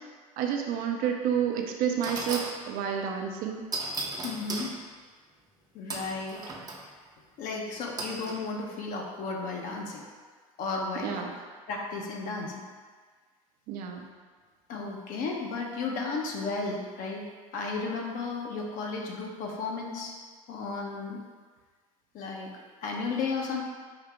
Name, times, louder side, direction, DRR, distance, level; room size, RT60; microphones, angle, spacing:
voice 1, 0.4-3.6 11.0-11.3 13.7-14.1, right 8 dB, 55° right, 3 dB, 0.7 m, -30 dB
sound 1, 1.3-1.4 2.0-2.6 3.7-4.7 5.9-6.8 8.0-8.4, right 2 dB, 20° right, 0.7 m, -35 dB
voice 2, 4.2-4.7 5.7-6.4 7.4-10.0 10.6-12.6 14.7-20.1 20.5-21.2 22.1-23.6, left 4 dB, 50° left, -1 dB, 0.8 m, -34 dB
4.8 x 2.8 x 3.5 m, 1.5 s
hypercardioid pair, 85°, 18 cm